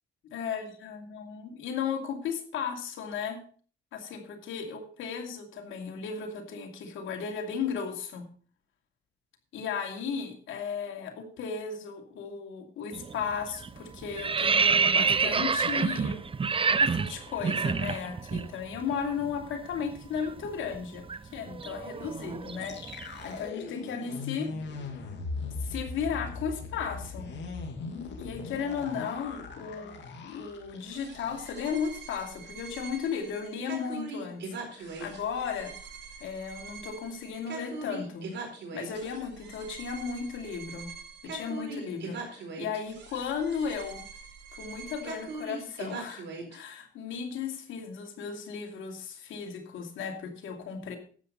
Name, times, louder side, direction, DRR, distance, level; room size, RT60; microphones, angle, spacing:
voice 1, 0.3-3.4 3.9-8.2 9.5-16.3 16.8-21.1 21.3-22.8 23.1-24.5 25.6-27.3 28.2-30.0 30.2-34.4 34.7-35.7 36.2-38.3 38.7-40.9 41.2-44.0 44.5-51.0, left 6 dB, 80° left, 5 dB, 2.6 m, -35 dB
sound 1, 12.9-13.2 13.5-18.5 18.7-18.9 19.2-23.3, right 5 dB, 25° right, 0.7 m, -28 dB
sound 2, 22.6-31.6 31.9-32.1 32.5-32.8, left 4 dB, 65° left, 2.4 m, -39 dB
sound 3, 30.8-46.6, right 3 dB, 60° right, 4.4 m, -42 dB
12.5 x 8.1 x 5.5 m, 0.43 s
cardioid pair, 90°, 20 cm